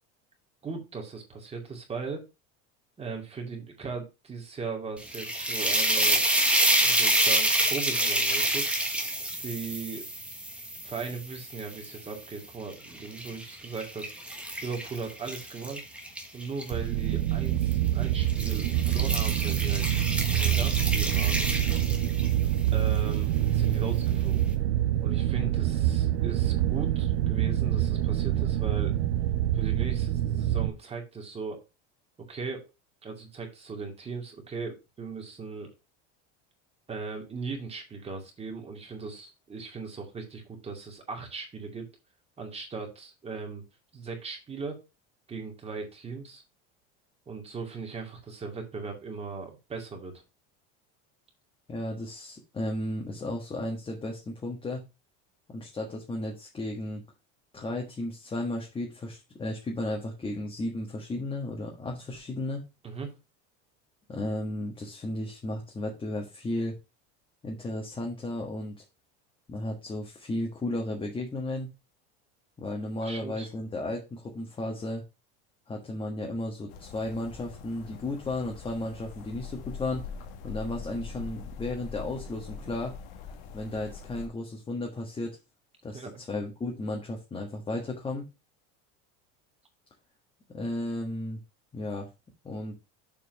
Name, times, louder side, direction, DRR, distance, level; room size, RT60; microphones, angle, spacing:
voice 1, 0.6-2.2 3.0-6.2 6.8-8.7 9.4-10.1 10.8-14.1 14.6-15.8 16.3-19.9 20.3-21.5 22.7-24.5 25.0-29.0 29.5-31.6 32.3-32.7 33.0-35.7 36.9-41.9 42.4-43.6 43.9-44.8 45.3-46.4 47.3-50.1 62.8-63.1 73.0-73.5 85.9-86.2, right 4 dB, 20° right, 2 dB, 2.3 m, -38 dB
sound 1, 5.0-12.2 12.7-16.7 17.6-17.9 18.3-22.4, right 1 dB, 5° right, 1.3 m, -28 dB
sound 2, 16.7-30.7, right 12 dB, 90° right, 0.8 m, -26 dB
voice 2, 51.7-54.8 55.5-57.0 57.5-62.6 64.1-66.7 67.4-68.7 69.5-71.7 72.6-75.0 75.7-80.1 80.4-82.9 83.5-85.4 85.8-88.3 90.5-91.4 91.7-92.1 92.4-92.7, left 1 dB, 15° left, 0 dB, 1.5 m, -34 dB
sound 3, 76.7-84.3, left 5 dB, 80° left, 1.7 m, -42 dB
7.2 x 4.5 x 5.5 m, 0.26 s
cardioid pair, 145°, 32 cm